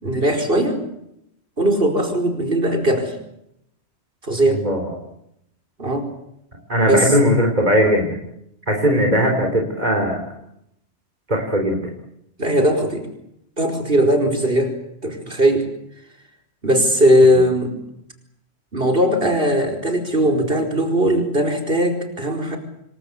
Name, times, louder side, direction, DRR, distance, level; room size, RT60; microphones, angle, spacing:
voice 1, 0.0-0.8 1.6-3.1 4.2-4.6 5.8-6.1 6.9-7.1 12.4-13.1 13.6-14.7 15.0-15.7 16.6-17.7 18.7-22.6, equal, 55° right, 4 dB, 5.1 m, -18 dB
voice 2, 4.5-4.9 6.7-8.2 8.7-10.2 11.3-11.8, equal, 40° right, 2 dB, 4.1 m, -18 dB
28.0 x 21.5 x 8.5 m, 0.79 s
omnidirectional pair, 1.1 m